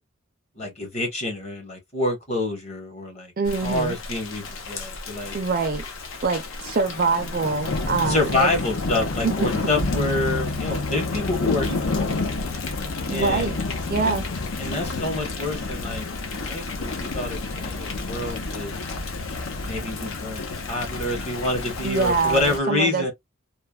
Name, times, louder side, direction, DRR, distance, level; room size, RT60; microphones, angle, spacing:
voice 1, 0.6-3.3 3.6-5.4 8.1-12.2 13.1-13.6 14.6-18.7 19.7-23.1, left 2 dB, 30° left, 1.0 m, -27 dB
voice 2, 3.4-4.0 5.3-5.8 6.2-8.5 9.2-9.7 13.1-13.6 13.9-14.3 21.8-23.1, right 4 dB, 40° right, 0.4 m, -25 dB
Thunder / Rain, 3.5-22.6, left 3 dB, 70° left, 0.6 m, -30 dB
sound 1, 9.8-18.0, left 2 dB, 85° left, 1.8 m, -36 dB
3.1 x 2.1 x 2.2 m
head